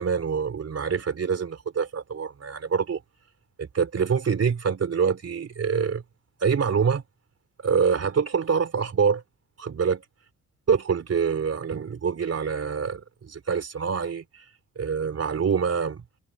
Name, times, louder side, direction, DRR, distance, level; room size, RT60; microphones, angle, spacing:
voice 1, 0.0-3.0 3.6-6.0 6.4-7.0 7.6-9.2 9.6-10.0 10.7-14.5 14.7-16.0, right 6 dB, 50° right, 3.4 m, -25 dB
supercardioid pair, 55°, 32 cm